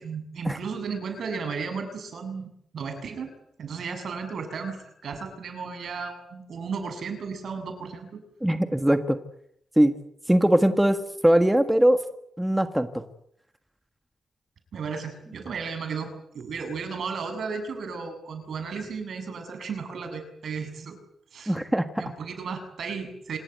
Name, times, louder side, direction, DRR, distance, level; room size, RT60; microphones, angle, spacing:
voice 1, 0.0-2.5 2.7-3.3 3.6-8.2 14.7-21.0 21.3-21.6 22.0-23.4, right 5 dB, 70° right, 8 dB, 7.0 m, -34 dB
voice 2, 8.4-9.2 9.8-9.9 10.3-11.0 11.2-12.0 12.4-13.0 21.5-21.9, right 1 dB, 5° right, 8 dB, 1.6 m, -20 dB
27.0 x 19.5 x 9.1 m, 0.74 s
wide cardioid pair, 125°, 0 cm